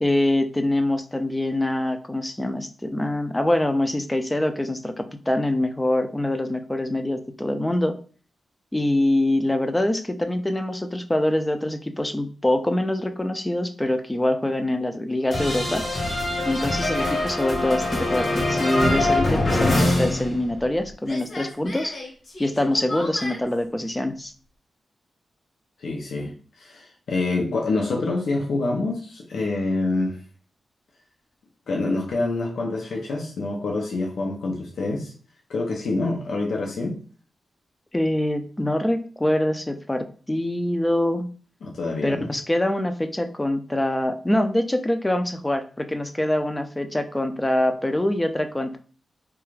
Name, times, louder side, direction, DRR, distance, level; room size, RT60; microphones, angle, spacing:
voice 1, 0.0-8.0 8.7-15.8 16.5-22.0 22.4-24.3 37.9-41.3 42.0-48.8, left 1 dB, 15° left, 0.3 m, -24 dB
sound 1, 15.3-20.8 21.0-23.4, left 2 dB, 55° left, 1.0 m, -24 dB
voice 2, 25.8-30.2 31.7-35.1 35.5-37.0 41.6-42.3, left 2 dB, 80° left, 0.5 m, -26 dB
2.4 x 2.3 x 3.1 m
cardioid pair, 90°, 0 cm